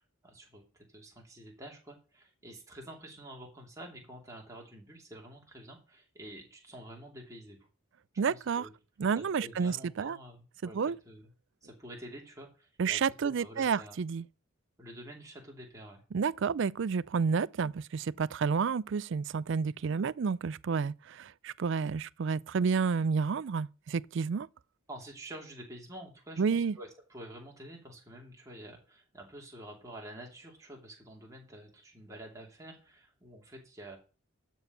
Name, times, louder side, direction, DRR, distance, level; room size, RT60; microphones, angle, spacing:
voice 1, 0.0-7.6 8.3-8.7 9.1-10.8 11.0-11.3 11.6-14.0 14.8-16.0 24.9-34.0, right 1 dB, 15° right, 2.9 m, -48 dB
voice 2, 8.2-8.7 9.0-10.2 10.6-11.0 12.8-14.2 16.1-24.5 26.4-26.7, right 5 dB, 60° right, 0.4 m, -30 dB
12.5 x 4.6 x 6.7 m
head